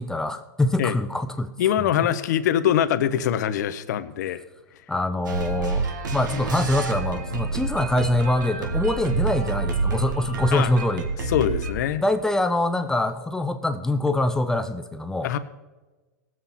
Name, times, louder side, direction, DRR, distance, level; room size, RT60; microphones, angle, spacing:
voice 1, 0.0-1.9 4.9-5.9 6.1-11.1 12.0-15.3, left 1 dB, 5° left, 9 dB, 0.5 m, -24 dB
voice 2, 1.6-4.4 10.5-10.7 11.3-12.0 15.2-15.4, left 10 dB, 65° left, 11 dB, 0.9 m, -23 dB
sound 1, 5.2-11.7, right 3 dB, 90° right, 1.8 m, -28 dB
sound 2, 9.0-11.5, right 11 dB, 55° right, 3.0 m, -38 dB
18.0 x 7.7 x 4.3 m, 1.2 s
hypercardioid pair, 130°, 10 cm